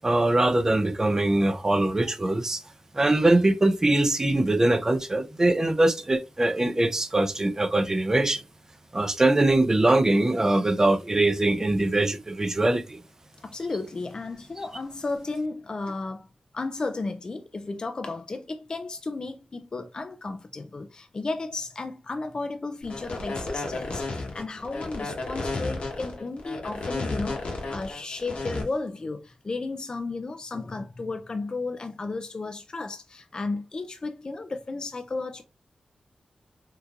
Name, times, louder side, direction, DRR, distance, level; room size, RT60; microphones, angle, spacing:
voice 1, 0.0-2.6 2.9-8.4 8.9-13.0, right 2 dB, 25° right, 0.5 m, -22 dB
voice 2, 13.4-16.3 16.5-35.4, left 3 dB, 40° left, 0.4 m, -33 dB
sound 1, 22.8-28.6, left 3 dB, 75° left, 1.1 m, -32 dB
3.6 x 2.8 x 2.3 m
wide cardioid pair, 80°, 2 cm